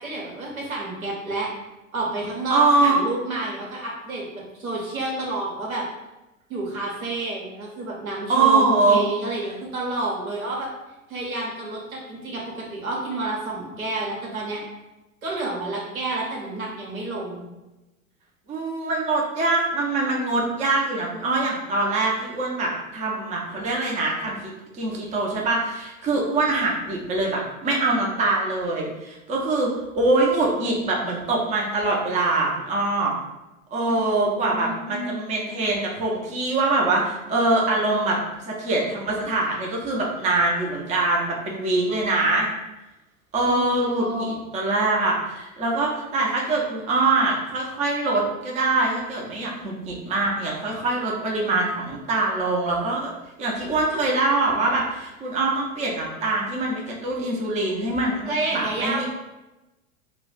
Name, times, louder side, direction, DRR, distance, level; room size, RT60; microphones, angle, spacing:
voice 1, 0.0-1.5 1.9-5.9 6.5-10.7 11.1-14.6 15.2-17.5 33.9-34.0 34.4-35.2 43.5-44.4 58.3-59.1, right 2 dB, 85° right, -3 dB, 1.0 m, -29 dB
voice 2, 2.5-3.0 8.3-9.0 18.5-24.5 24.8-33.1 33.7-38.2 38.4-42.5 43.3-53.1 53.4-59.1, right 2 dB, 20° right, -2 dB, 0.5 m, -23 dB
2.3 x 2.2 x 3.7 m, 1.0 s
hypercardioid pair, 90°, 41 cm